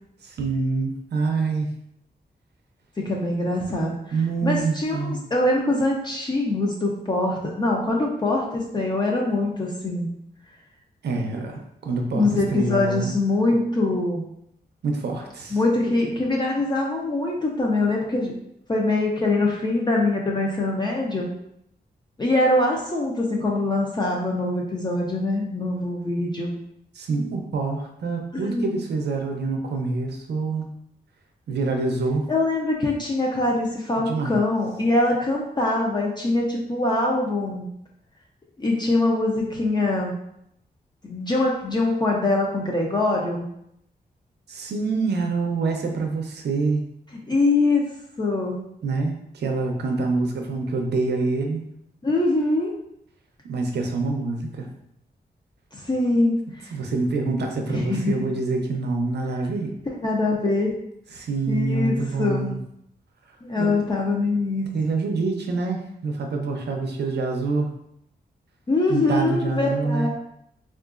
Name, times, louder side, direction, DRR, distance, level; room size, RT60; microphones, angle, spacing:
voice 1, 0.2-1.7 4.1-5.2 11.0-13.1 14.8-15.6 26.9-30.7 31.5-32.3 34.0-34.4 44.5-46.8 48.8-51.6 53.4-54.7 56.7-59.7 61.1-62.6 63.6-63.8 64.7-67.7 68.9-70.1, right 3 dB, 85° right, 3 dB, 0.5 m, -26 dB
voice 2, 3.0-4.1 4.4-10.1 12.1-14.2 15.5-18.4 18.7-21.3 22.2-26.5 28.3-28.8 32.3-37.7 38.6-40.1 41.0-43.4 47.3-47.8 48.2-48.6 52.0-52.7 55.7-56.3 57.7-58.2 60.0-60.7 61.5-62.6 63.4-64.7 68.7-70.1, left 2 dB, 25° left, -2 dB, 0.4 m, -23 dB
3.7 x 2.4 x 2.4 m, 0.75 s
wide cardioid pair, 130°, 17 cm